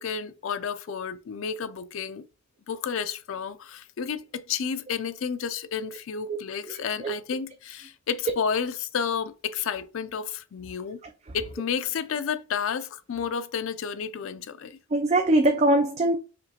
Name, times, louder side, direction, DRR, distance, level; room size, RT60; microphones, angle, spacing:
voice 1, 0.0-2.3 2.7-11.0 11.3-14.8, left 6 dB, 65° left, 0.4 m, -31 dB
voice 2, 6.7-7.1 14.9-16.2, right 1 dB, 30° right, 0.4 m, -22 dB
5.1 x 2.8 x 2.9 m
head